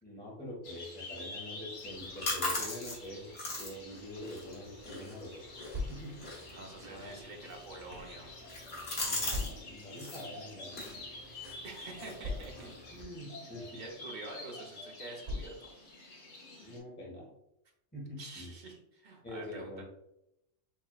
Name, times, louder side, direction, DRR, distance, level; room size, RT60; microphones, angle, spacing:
voice 1, 0.0-3.3 3.6-5.4 5.9-6.2 8.9-10.7 12.9-13.8 16.6-17.3 17.9-18.5 19.2-19.8, left 1 dB, 10° left, -5 dB, 1.3 m, -45 dB
sound 1, 0.6-16.8, left 2 dB, 85° left, 1.3 m, -49 dB
sound 2, 1.8-9.5 9.8-10.3 10.7-13.0, left 2 dB, 55° left, 1.4 m, -40 dB
sound 3, 5.7-6.4 7.2-8.2 9.3-9.9 10.8-10.9 11.2-11.3 12.2-12.9 13.8-14.0 15.2-15.9, left 2 dB, 70° right, 1.6 m, -40 dB
voice 2, 6.5-8.3 10.7-11.1 11.6-12.7 13.7-15.7 18.2-19.8, right 2 dB, 40° right, 0 dB, 0.9 m, -47 dB
4.3 x 3.5 x 2.4 m, 0.80 s
omnidirectional pair, 1.3 m